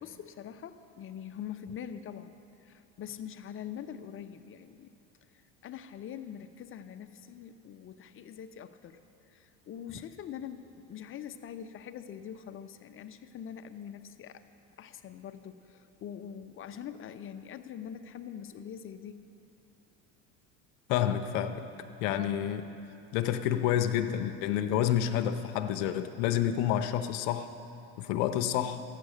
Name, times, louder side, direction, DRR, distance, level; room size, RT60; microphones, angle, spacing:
voice 1, 0.0-2.3 2.6-5.0 5.6-9.0 9.3-14.4 14.8-19.3, left 9 dB, 35° left, 9 dB, 0.7 m, -43 dB
voice 2, 20.9-21.6 22.0-22.6 23.1-27.5 28.0-28.8, left 10 dB, 80° left, 7 dB, 0.7 m, -29 dB
14.0 x 9.1 x 6.5 m, 2.8 s
supercardioid pair, 105°, 35 cm